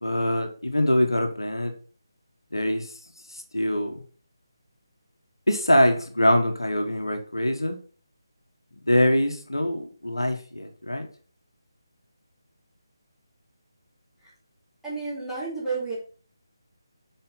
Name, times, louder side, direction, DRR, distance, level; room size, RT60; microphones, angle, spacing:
voice 1, 0.0-1.7 2.5-2.9 3.5-4.0 5.5-7.8 8.9-11.1, left 1 dB, 75° left, 4 dB, 1.6 m, -23 dB
voice 2, 14.8-15.9, right 4 dB, ahead, -11 dB, 2.7 m, -31 dB
8.7 x 4.8 x 3.9 m, 0.40 s
figure-of-eight pair, 155°, 2 cm